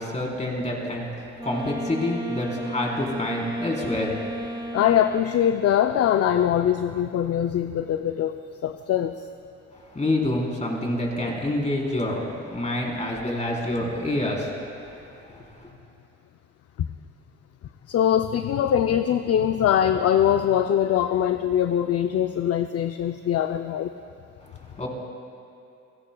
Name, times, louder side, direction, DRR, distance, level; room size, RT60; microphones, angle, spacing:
voice 1, 0.0-4.6 9.7-14.6 14.9-15.7 24.5-24.9, left 1 dB, 25° left, -2 dB, 3.9 m, -28 dB
Wind instrument woodwind instrument, 1.4-5.7, equal, 15° right, 1.6 m, -34 dB
voice 2, 4.7-8.4 8.6-9.2 17.9-23.9, left 10 dB, 55° left, 8 dB, 0.5 m, -22 dB
29.0 x 17.5 x 2.3 m, 2.7 s
cardioid pair, 90°, 30 cm